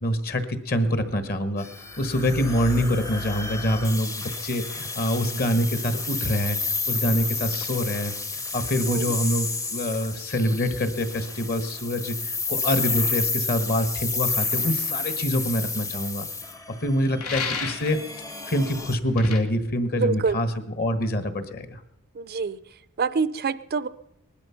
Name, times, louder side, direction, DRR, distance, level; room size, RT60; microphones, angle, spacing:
voice 1, 0.0-1.7 2.0-8.1 8.5-16.3 16.8-20.5 20.8-21.8, equal, 45° left, 10 dB, 1.4 m, -25 dB
sound 1, 1.6-19.0, left 4 dB, 15° left, 0.7 m, -31 dB
sound 2, 17.2-18.0 19.2-19.4, left 5 dB, 85° left, 2.2 m, -31 dB
voice 2, 20.0-20.4 22.1-22.6 23.0-23.9, right 5 dB, 45° right, 16 dB, 0.5 m, -26 dB
19.5 x 12.0 x 5.8 m, 0.86 s
head